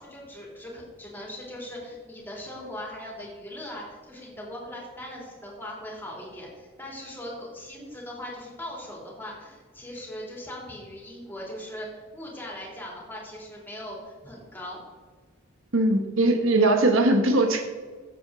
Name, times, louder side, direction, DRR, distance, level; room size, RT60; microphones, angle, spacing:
voice 1, 0.0-14.8, left 1 dB, 10° left, -3 dB, 3.3 m, -40 dB
voice 2, 15.7-17.6, right 2 dB, 75° right, 5 dB, 1.2 m, -20 dB
14.5 x 7.8 x 4.0 m, 1.4 s
head